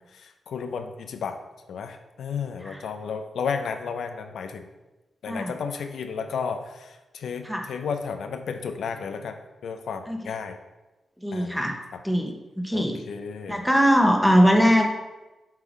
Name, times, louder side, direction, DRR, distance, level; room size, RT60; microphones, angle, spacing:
voice 1, 0.1-1.4 1.7-4.7 5.2-10.6 11.3-11.6 12.7-13.6, left 6 dB, 90° left, 7 dB, 0.6 m, -33 dB
voice 2, 11.2-11.8 12.0-13.0 13.5-14.9, equal, ahead, 3 dB, 1.0 m, -21 dB
7.4 x 3.8 x 4.8 m, 1.1 s
wide cardioid pair, 110°, 0 cm